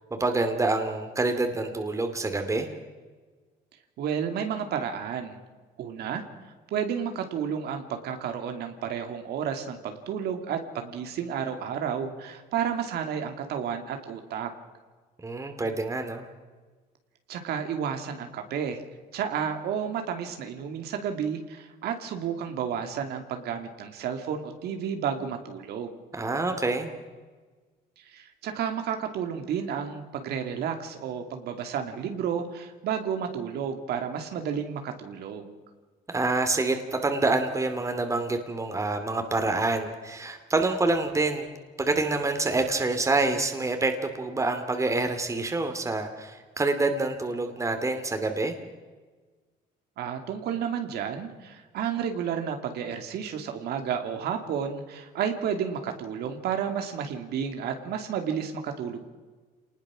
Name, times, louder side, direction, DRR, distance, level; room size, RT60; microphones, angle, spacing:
voice 1, 0.1-2.7 15.2-16.3 26.1-26.9 36.1-41.5 41.8-48.6, right 3 dB, 20° right, 6 dB, 2.7 m, -27 dB
voice 2, 4.0-5.4 5.8-6.2 6.7-14.5 17.3-18.8 19.1-26.0 28.0-35.6 50.0-59.0, right 8 dB, 75° right, 5 dB, 2.6 m, -31 dB
27.5 x 20.0 x 6.3 m, 1.4 s
cardioid pair, 110°, 17 cm